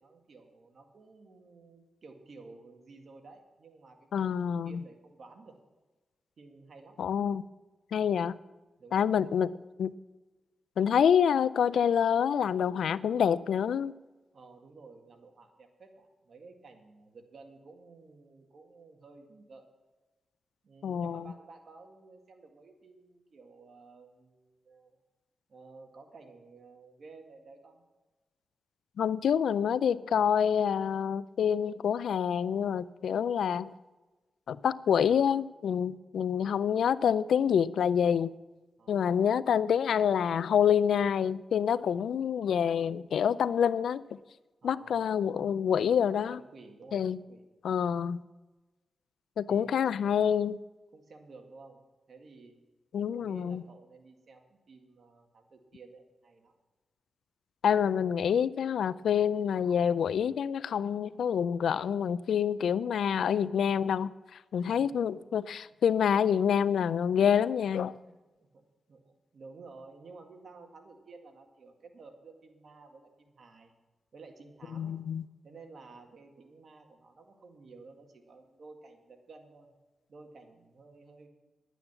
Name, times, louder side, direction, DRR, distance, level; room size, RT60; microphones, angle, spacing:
voice 1, 0.0-5.6 6.4-7.0 8.8-9.3 14.3-19.7 20.6-25.0 25.5-27.8 38.8-39.3 44.6-45.1 46.3-47.4 49.5-49.9 50.9-51.8 52.1-52.6 53.1-56.5 64.6-65.0 68.1-68.2 68.5-73.7 74.1-74.9 75.4-79.7 80.1-81.3, right 3 dB, 65° right, 2.0 m, -53 dB
voice 2, 4.1-4.8 7.0-7.4 7.9-8.3 8.9-9.5 9.8-9.9 10.8-13.9 20.8-21.3 29.0-33.7 34.5-38.3 38.9-44.2 44.6-46.4 46.9-47.2 47.6-48.2 49.4-50.6 52.9-53.6 57.6-68.0 74.7-75.3, left 8 dB, 90° left, 0.3 m, -27 dB
11.0 x 9.1 x 6.9 m
cardioid pair, 60°, 0 cm